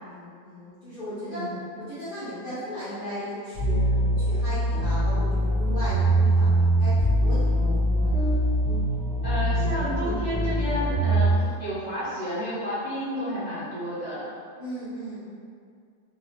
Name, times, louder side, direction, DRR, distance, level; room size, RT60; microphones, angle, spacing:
voice 1, 0.0-1.4 1.8-8.3 11.3-11.6 14.6-15.3, equal, 75° left, -12 dB, 0.5 m, -37 dB
sound 1, 3.5-11.3, right 1 dB, 40° right, 1.1 m, -23 dB
voice 2, 9.2-14.3, equal, 65° right, -13 dB, 0.4 m, -31 dB
3.0 x 2.7 x 2.7 m, 2.2 s
omnidirectional pair, 1.9 m